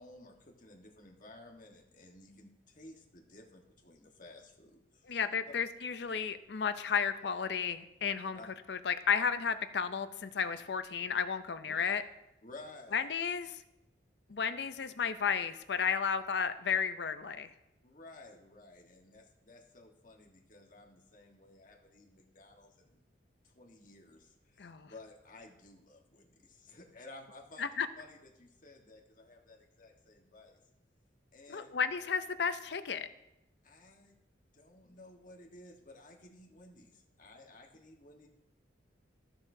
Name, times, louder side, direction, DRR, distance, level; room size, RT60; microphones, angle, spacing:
voice 1, 0.0-5.2 8.3-8.5 11.8-11.9 12.4-13.1 17.8-23.0 23.4-30.6 31.3-31.7 33.6-34.2 34.5-38.3, left 2 dB, 45° left, 0 dB, 1.4 m, -55 dB
voice 2, 5.1-8.4 8.7-12.0 12.9-13.6 14.3-17.5 24.6-24.9 27.6-27.9 31.5-33.1, left 6 dB, 65° left, 11 dB, 0.5 m, -33 dB
14.0 x 6.9 x 2.7 m, 0.90 s
head